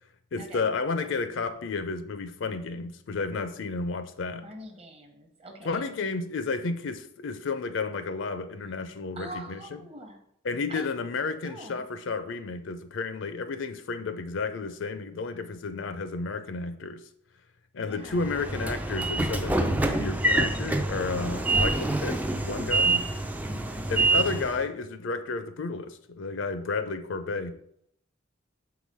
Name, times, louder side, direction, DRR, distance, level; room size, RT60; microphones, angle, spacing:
voice 1, 0.3-4.5 5.6-9.6 10.4-17.0 17.7-23.1 23.9-27.6, left 4 dB, 70° left, 10 dB, 0.5 m, -32 dB
voice 2, 4.4-5.8 9.2-10.2 10.7-10.9 11.4-11.8 17.8-18.4 21.5-21.8 23.5-23.8, equal, 30° right, 4 dB, 0.9 m, -43 dB
Train / Sliding door, 18.1-24.6, right 2 dB, 10° right, 0.3 m, -26 dB
4.8 x 3.9 x 5.3 m, 0.69 s
head